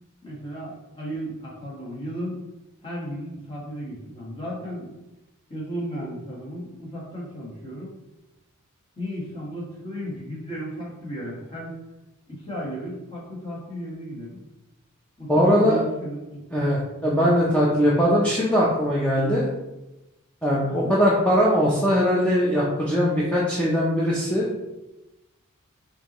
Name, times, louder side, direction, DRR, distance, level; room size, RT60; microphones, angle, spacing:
voice 1, 0.2-2.4 2.8-5.0 5.5-7.9 9.0-11.8 12.3-14.4 15.2-16.5 20.7-20.9, equal, 25° left, -5 dB, 1.5 m, -34 dB
voice 2, 15.3-15.8 16.5-19.5 20.4-24.5, equal, 5° left, -6 dB, 0.6 m, -21 dB
5.6 x 2.8 x 3.0 m, 1.0 s
head